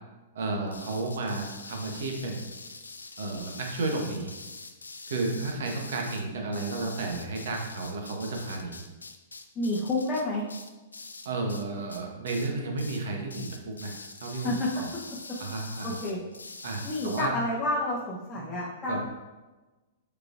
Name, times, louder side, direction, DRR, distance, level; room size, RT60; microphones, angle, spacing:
voice 1, 0.3-2.5 3.2-4.3 5.1-8.8 11.2-14.0 14.2-14.9 15.4-16.0 16.6-17.4 18.3-18.5 18.9-19.0, right 3 dB, 60° right, 1 dB, 0.9 m, -32 dB
sound 1, 0.7-11.6 11.9-12.5 12.8-13.0 13.3-17.3, left 3 dB, 80° left, 0.3 m, -44 dB
voice 2, 9.6-10.4 14.4-14.7 15.8-16.2 16.8-19.0, left 2 dB, 20° left, -6 dB, 0.8 m, -29 dB
4.8 x 4.5 x 2.4 m, 1.2 s
figure-of-eight pair, 110°, 0 cm